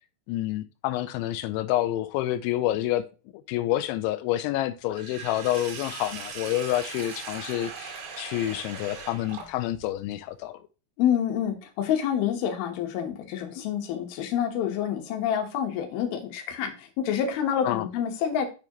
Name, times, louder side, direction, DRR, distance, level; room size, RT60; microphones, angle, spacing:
voice 1, 0.3-3.0 3.5-10.6 17.6-17.9, left 14 dB, 90° left, 2.9 m, -28 dB
Sink (filling or washing), 4.9-9.9, right 5 dB, 70° right, 4.0 m, -39 dB
voice 2, 11.0-18.5, left 9 dB, 65° left, 2.8 m, -27 dB
7.0 x 6.7 x 3.0 m
omnidirectional pair, 5.2 m